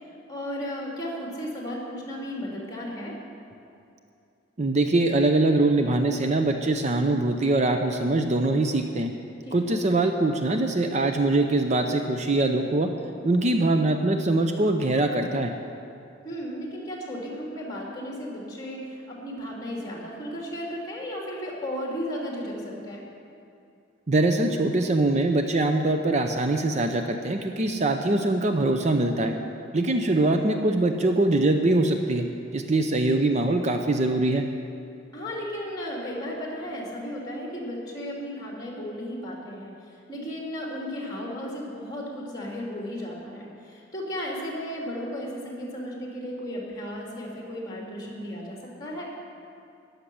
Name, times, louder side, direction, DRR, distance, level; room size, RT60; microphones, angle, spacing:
voice 1, 0.1-3.2 9.4-9.8 16.2-23.0 30.2-30.3 35.1-49.0, equal, 20° left, -2 dB, 2.9 m, -35 dB
voice 2, 4.6-9.1 9.5-12.9 13.2-15.5 24.1-29.3 29.7-32.3 32.5-34.5, right 2 dB, 40° right, 5 dB, 0.6 m, -23 dB
14.0 x 6.6 x 10.0 m, 2.6 s
head